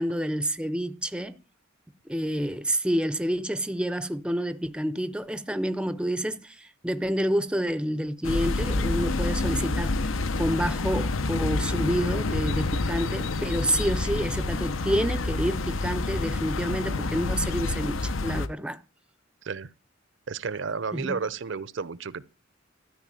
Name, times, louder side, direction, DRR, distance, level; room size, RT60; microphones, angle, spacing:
voice 1, 0.0-1.3 2.1-18.8 20.9-21.2, equal, 5° right, 0.5 m, -29 dB
sound 1, 8.2-18.5, left 2 dB, 85° left, 0.8 m, -28 dB
voice 2, 20.3-22.2, right 5 dB, 65° right, 0.7 m, -32 dB
13.0 x 4.9 x 8.8 m
head